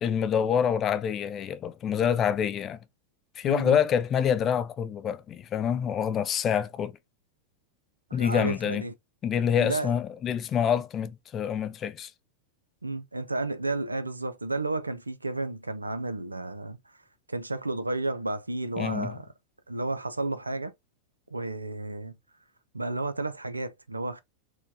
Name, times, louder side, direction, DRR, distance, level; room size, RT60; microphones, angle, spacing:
voice 1, 0.0-2.8 3.4-6.9 8.1-8.8 9.2-12.1 18.8-19.2, left 8 dB, 30° left, 0.4 m, -26 dB
voice 2, 3.4-3.8 8.1-8.9 9.6-9.9 12.8-16.8 17.3-19.3 19.7-20.7 21.3-22.1 22.7-24.2, right 2 dB, 80° right, 0.4 m, -32 dB
4.4 x 2.2 x 2.7 m
figure-of-eight pair, 90°, 0 cm